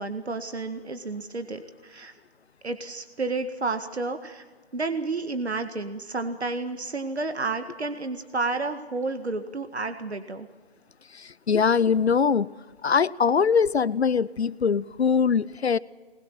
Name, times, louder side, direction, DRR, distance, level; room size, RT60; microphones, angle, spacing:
voice 1, 0.0-2.1 2.6-4.4 4.7-10.5, right 3 dB, 85° right, 8 dB, 1.9 m, -31 dB
voice 2, 11.1-12.5 12.8-15.8, left 6 dB, 80° left, 20 dB, 0.7 m, -22 dB
23.5 x 21.0 x 7.5 m, 1.4 s
figure-of-eight pair, 170°, 32 cm